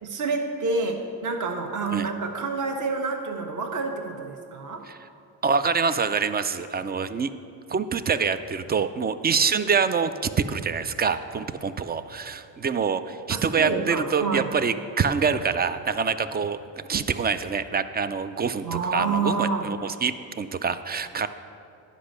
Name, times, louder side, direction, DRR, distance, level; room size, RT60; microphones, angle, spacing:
voice 1, 0.0-4.8 13.3-14.5 18.6-19.7, right 4 dB, 40° right, 3 dB, 1.1 m, -28 dB
voice 2, 5.4-7.3 7.7-16.6 16.9-21.3, right 5 dB, 25° right, 12 dB, 0.3 m, -26 dB
10.0 x 5.2 x 6.5 m, 2.6 s
cardioid pair, 80°, 45 cm